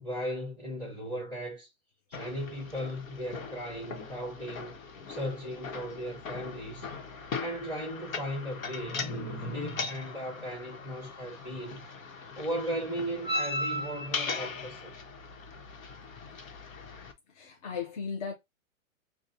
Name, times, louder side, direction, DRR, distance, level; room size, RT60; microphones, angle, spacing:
voice 1, 0.0-1.7 2.1-4.8 5.1-6.9 7.4-11.8 12.3-14.9, equal, 5° left, 0.9 m, -36 dB
sound 1, 2.1-17.1, left 3 dB, 75° left, 1.1 m, -39 dB
voice 2, 17.3-18.3, left 6 dB, 30° left, 0.4 m, -36 dB
6.3 x 2.3 x 2.6 m
hypercardioid pair, 140°, 41 cm